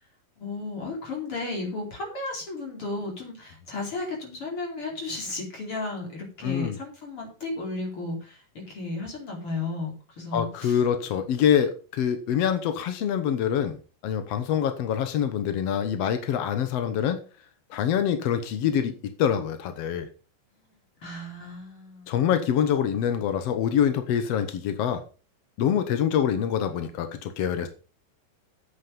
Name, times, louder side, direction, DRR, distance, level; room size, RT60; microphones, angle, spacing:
voice 1, 0.4-10.8 21.0-22.2, left 2 dB, 35° left, -1 dB, 5.1 m, -34 dB
voice 2, 6.4-6.8 10.3-13.8 14.0-17.2 17.7-18.9 19.2-20.1 22.1-25.0 25.6-27.7, left 9 dB, 70° left, 8 dB, 1.5 m, -25 dB
10.5 x 8.4 x 5.4 m, 0.36 s
omnidirectional pair, 4.2 m